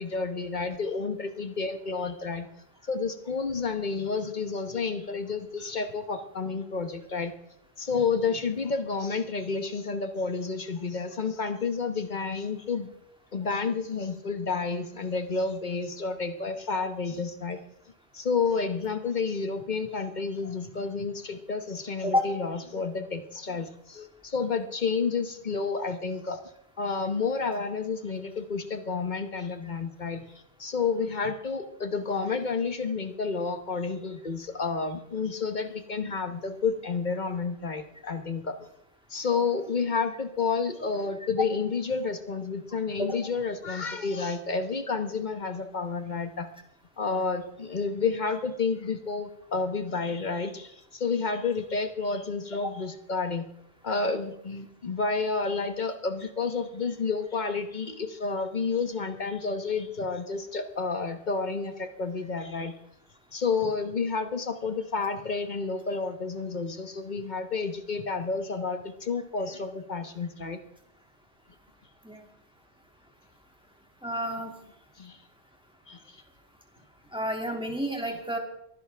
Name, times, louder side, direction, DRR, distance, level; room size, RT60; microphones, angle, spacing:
voice 1, 0.0-2.5 2.9-7.3 7.8-12.9 13.3-17.6 18.1-26.4 26.8-30.2 30.6-38.6 39.1-46.5 47.0-53.5 53.8-62.7 63.3-70.6 75.0-75.2 75.9-76.2, left 4 dB, 45° left, 7 dB, 1.3 m, -30 dB
voice 2, 74.0-74.5 77.1-78.4, equal, 5° right, 1 dB, 2.4 m, -29 dB
23.5 x 10.5 x 3.5 m, 0.77 s
omnidirectional pair, 1.1 m